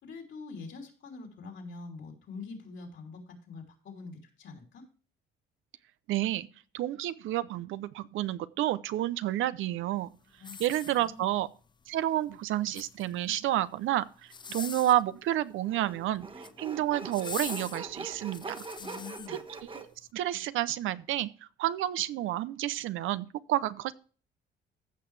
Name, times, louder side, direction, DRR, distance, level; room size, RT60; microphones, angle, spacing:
voice 1, 0.0-4.9 10.3-10.6 10.9-11.3 18.8-19.4, left 4 dB, 65° left, 3.2 m, -45 dB
voice 2, 6.1-6.5 6.7-10.1 10.6-11.5 11.9-16.3 16.6-18.7 19.3-19.9 20.1-21.3 21.6-23.9, right 13 dB, 85° right, 0.6 m, -30 dB
sound 1, 10.4-11.4 12.5-13.3 14.2-15.1 16.2-16.6 17.1-19.3 19.9-20.0, left 5 dB, 25° left, 0.4 m, -42 dB
Sawing, 14.5-14.6 15.7-19.8, right 3 dB, 25° right, 1.2 m, -42 dB
15.0 x 6.0 x 3.2 m
cardioid pair, 90°, 20 cm